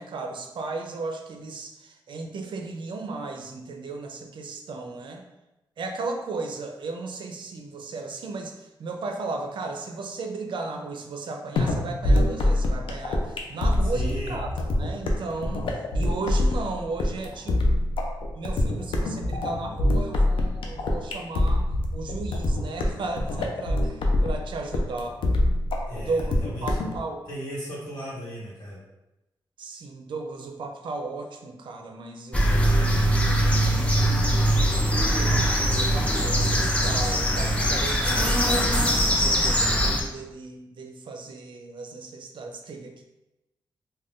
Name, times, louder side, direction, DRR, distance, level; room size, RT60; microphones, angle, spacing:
voice 1, 0.0-5.2 5.8-14.5 14.8-17.8 18.3-21.7 21.9-25.2 25.9-27.2 29.6-34.0 34.6-38.8 39.2-43.0, right 3 dB, 70° right, 4 dB, 0.4 m, -35 dB
sound 1, 11.6-27.0, left 1 dB, 90° left, 0.4 m, -24 dB
voice 2, 13.8-14.3 25.9-26.7 27.3-28.8, equal, 45° left, -10 dB, 1.1 m, -36 dB
sound 2, 32.3-40.0, equal, 15° left, 0.5 m, -22 dB
2.5 x 2.2 x 3.5 m, 0.96 s
cardioid pair, 95°, 9 cm